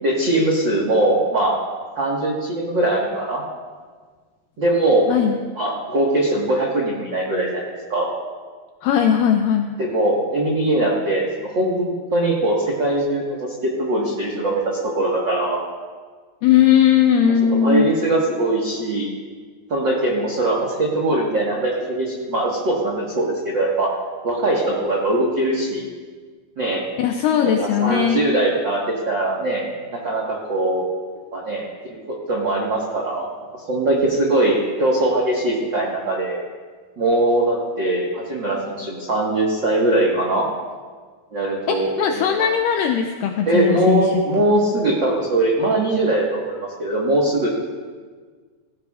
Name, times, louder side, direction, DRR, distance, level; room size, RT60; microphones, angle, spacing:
voice 1, 0.0-1.5 1.9-3.4 4.6-5.1 5.5-8.1 9.8-15.6 17.4-19.1 19.7-23.9 24.2-25.8 26.6-26.8 27.4-29.6 29.9-30.8 31.3-33.3 33.7-36.4 37.0-40.5 41.3-42.5 43.5-47.5, right 1 dB, 65° right, -4 dB, 1.1 m, -21 dB
voice 2, 8.8-9.7 16.4-18.0 27.0-28.3 41.7-44.2, left 8 dB, 85° left, 3 dB, 1.9 m, -18 dB
17.0 x 15.0 x 2.4 m, 1.5 s
omnidirectional pair, 4.6 m